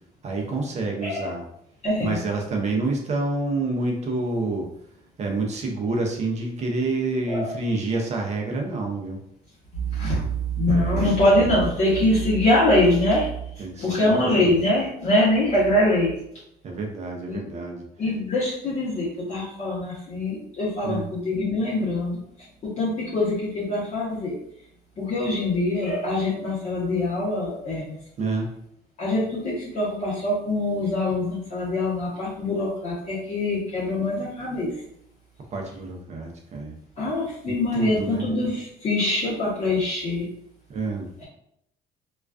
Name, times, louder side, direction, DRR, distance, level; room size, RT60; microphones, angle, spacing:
voice 1, 0.2-1.4 2.0-4.7 5.2-9.2 10.7-11.1 13.6-14.5 16.6-17.8 20.8-21.1 28.2-28.5 35.5-36.7 37.5-38.3 40.7-41.1, right 3 dB, 40° right, 1 dB, 0.5 m, -28 dB
voice 2, 1.0-1.3 1.8-2.2 7.3-7.5 9.7-13.5 13.8-16.2 17.2-17.4 18.0-22.2 22.6-24.4 25.0-28.0 29.0-34.7 37.0-40.3, left 1 dB, 45° left, -7 dB, 0.8 m, -23 dB
2.3 x 2.2 x 2.3 m, 0.74 s
cardioid pair, 110°, 17 cm